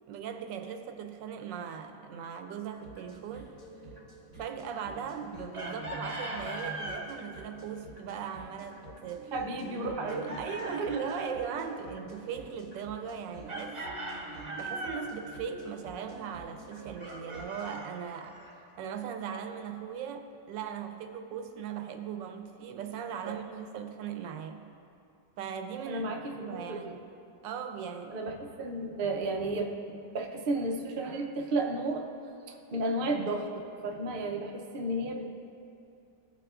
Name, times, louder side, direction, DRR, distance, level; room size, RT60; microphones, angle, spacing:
voice 1, 0.1-3.5 4.4-9.3 9.8-13.8 14.6-24.6 25.4-26.1 26.4-27.0 27.4-28.2, right 7 dB, 80° right, 6 dB, 1.3 m, -39 dB
sound 1, 2.8-17.8, right 1 dB, 50° left, 2.3 m, -48 dB
Chicken rooster, 5.5-7.1 10.0-11.4 13.5-15.1 17.0-18.6, right 1 dB, 25° right, 0.7 m, -39 dB
voice 2, 9.3-10.3 10.7-10.9 23.3-23.4 25.9-27.0 28.1-32.1 32.7-33.5 33.8-35.2, right 2 dB, 65° right, 1 dB, 0.5 m, -33 dB
16.5 x 5.9 x 2.4 m, 2.6 s
omnidirectional pair, 2.0 m